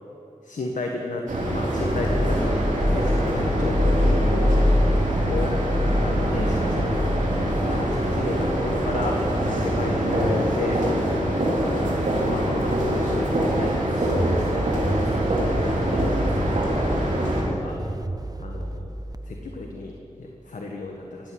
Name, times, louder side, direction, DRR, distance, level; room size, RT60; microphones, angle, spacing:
voice 1, 0.4-2.6 2.9-4.7 5.3-5.5 6.0-7.2 7.6-9.2 9.4-10.8 11.6-11.9 12.3-15.5 15.9-16.7 17.2-17.8 18.4-18.9 19.3-21.3, left 3 dB, 80° left, 1 dB, 1.4 m, -33 dB
sound 1, 1.3-17.4, right 1 dB, 80° right, 3.4 m, -24 dB
sound 2, 1.8-8.5, left 1 dB, 35° left, 1.5 m, -24 dB
sound 3, 14.1-20.0, right 1 dB, 30° right, 0.9 m, -31 dB
17.5 x 7.8 x 9.9 m, 2.9 s
cardioid pair, 40°, 13 cm